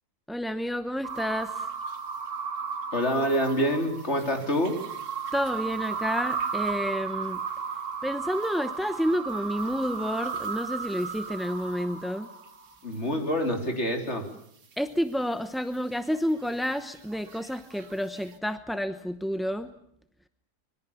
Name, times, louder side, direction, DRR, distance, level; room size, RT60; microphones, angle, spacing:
voice 1, 0.3-1.7 5.3-7.4 8.0-12.3 14.8-19.7, equal, ahead, 10 dB, 0.4 m, -30 dB
sound 1, 1.0-12.7 16.1-18.4, right 5 dB, 50° right, 1.7 m, -35 dB
voice 2, 2.9-4.7 12.8-14.2, equal, 45° left, 4 dB, 4.0 m, -26 dB
25.0 x 22.0 x 7.1 m, 0.73 s
omnidirectional pair, 1.7 m